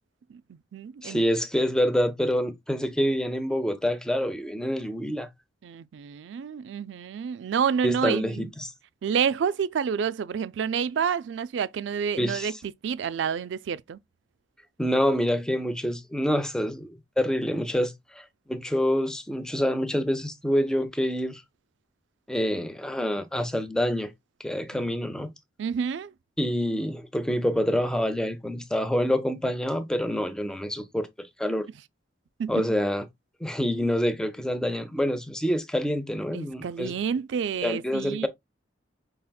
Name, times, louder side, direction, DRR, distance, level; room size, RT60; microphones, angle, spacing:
voice 1, 0.3-1.2 5.6-8.5 9.0-14.0 24.7-24.9 25.6-26.1 32.4-32.7 36.3-38.3, right 7 dB, 70° right, 0.3 m, -29 dB
voice 2, 1.0-5.3 7.8-8.7 12.2-12.5 14.8-21.4 22.3-24.1 24.4-25.3 26.4-31.7 32.5-33.1 33.4-36.9 37.6-38.3, equal, 5° left, 0.5 m, -27 dB
5.7 x 3.4 x 2.2 m
head